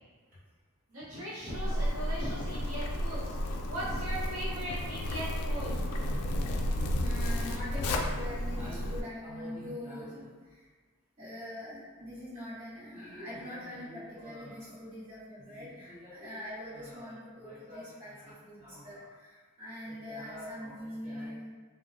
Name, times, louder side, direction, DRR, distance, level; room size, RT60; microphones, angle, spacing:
voice 1, 0.9-5.7, equal, 70° right, -11 dB, 0.9 m, -39 dB
Zipper (clothing), 1.5-9.0, equal, 75° left, 0.3 m, -32 dB
voice 2, 1.5-2.1 2.4-2.5 3.7-4.0 5.5-5.6 6.3-10.7 11.2-21.5, left 1 dB, 35° right, -12 dB, 1.2 m, -43 dB
2.7 x 2.1 x 2.6 m, 1.4 s
head